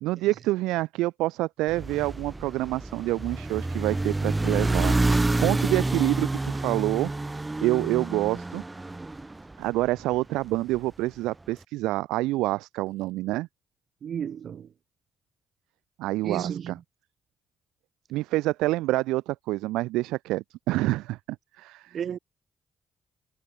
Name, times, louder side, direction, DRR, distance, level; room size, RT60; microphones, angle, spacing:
voice 1, 0.0-7.1 7.6-8.6 9.6-13.5 16.0-16.8 18.1-21.2 21.6-22.0, right 18 dB, 85° right, 0.5 m, -27 dB
sound 1, 1.7-10.0, right 2 dB, 20° right, 2.2 m, -28 dB
voice 2, 14.0-14.7 16.2-16.7 21.9-22.2, right 8 dB, 60° right, 2.9 m, -32 dB
hypercardioid pair, 45°, 0 cm